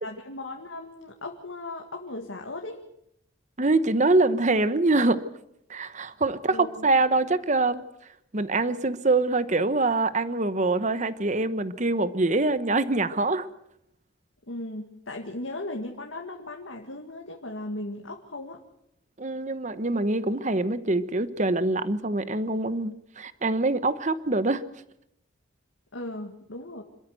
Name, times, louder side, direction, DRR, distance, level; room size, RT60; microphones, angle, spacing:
voice 1, 0.0-2.9 6.5-6.9 14.5-18.6 25.9-26.8, left 2 dB, 80° left, 2 dB, 1.9 m, -37 dB
voice 2, 3.6-5.2 5.7-7.8 8.3-13.5 19.2-24.6, right 2 dB, 35° right, 13 dB, 1.0 m, -24 dB
27.0 x 13.0 x 7.9 m, 0.77 s
head